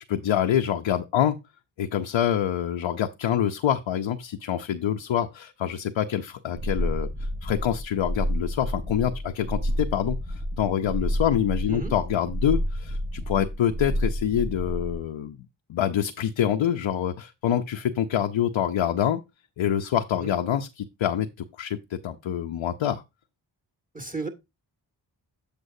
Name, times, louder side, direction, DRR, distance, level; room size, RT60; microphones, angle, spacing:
voice 1, 0.0-1.4 1.8-7.1 7.4-15.4 15.7-19.2 19.6-23.0, left 10 dB, 85° left, 0.7 m, -26 dB
sound 1, 6.6-15.0, equal, 60° right, 5.4 m, -29 dB
voice 2, 23.9-24.3, right 3 dB, 20° right, 2.0 m, -34 dB
8.1 x 6.6 x 2.7 m
cardioid pair, 40°, 46 cm